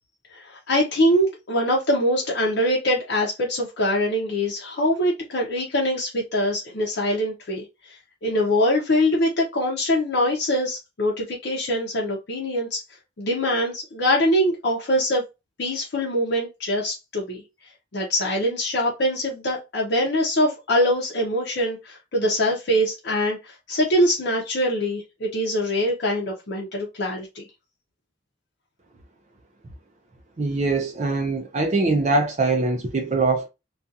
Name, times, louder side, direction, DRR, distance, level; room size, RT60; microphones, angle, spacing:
voice 1, 0.3-12.8 13.2-15.2 15.6-17.4 17.9-27.4, equal, 60° left, 0.6 m, -23 dB
voice 2, 30.4-33.5, right 3 dB, 40° right, 0.4 m, -22 dB
2.4 x 2.4 x 2.6 m
head